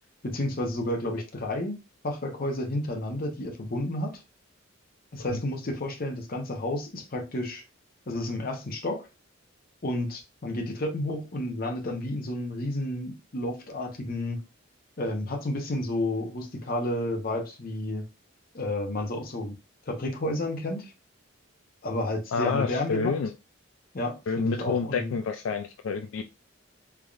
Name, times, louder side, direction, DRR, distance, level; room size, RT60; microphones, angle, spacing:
voice 1, 0.2-1.8 2.0-4.2 5.1-7.6 8.1-9.1 9.8-14.4 15.0-18.0 18.5-19.5 19.9-20.9 21.8-23.1 23.9-25.1, left 1 dB, 45° left, 4 dB, 0.8 m, -31 dB
voice 2, 22.3-23.3 24.3-26.2, left 5 dB, 75° left, 7 dB, 0.3 m, -28 dB
3.6 x 3.4 x 2.4 m, 0.27 s
head